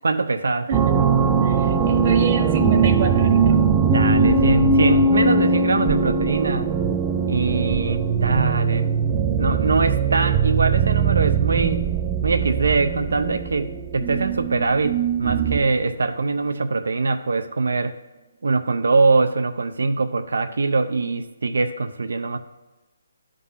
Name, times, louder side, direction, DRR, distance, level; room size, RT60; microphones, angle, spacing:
voice 1, 0.0-0.7 3.9-6.7 7.3-9.0 9.4-11.9 12.2-18.0 18.4-22.4, right 3 dB, 80° right, 8 dB, 0.5 m, -23 dB
sound 1, 0.7-15.8, right 5 dB, 15° right, 0.3 m, -20 dB
voice 2, 1.4-3.6, right 3 dB, 35° right, 5 dB, 0.8 m, -28 dB
11.0 x 3.8 x 5.5 m, 1.1 s
hypercardioid pair, 170°, 0 cm